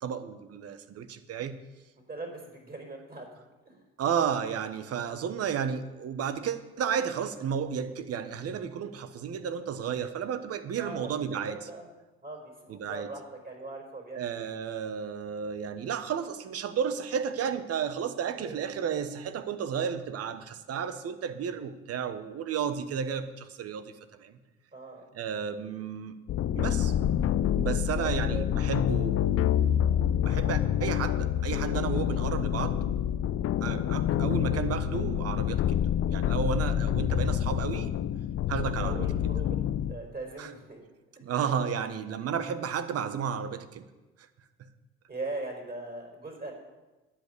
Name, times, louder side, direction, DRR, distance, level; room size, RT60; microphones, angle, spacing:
voice 1, 0.0-1.6 4.0-11.6 12.7-13.1 14.1-23.9 24.2-24.4 25.1-26.1 26.5-26.9 27.5-32.8 33.6-35.8 36.1-37.9 38.5-39.1 40.4-40.5 41.2-43.8, right 7 dB, 55° right, 11 dB, 1.1 m, -32 dB
voice 2, 2.1-3.8 10.8-11.9 12.2-14.5 18.4-18.7 24.7-25.0 28.0-28.4 34.1-34.3 38.8-39.6 39.9-40.8 41.3-41.5 45.1-46.5, right 2 dB, 30° right, 1 dB, 4.6 m, -41 dB
sound 1, 26.3-40.0, left 10 dB, 50° left, 0.6 m, -27 dB
10.0 x 8.4 x 6.8 m, 1.1 s
hypercardioid pair, 65°, 29 cm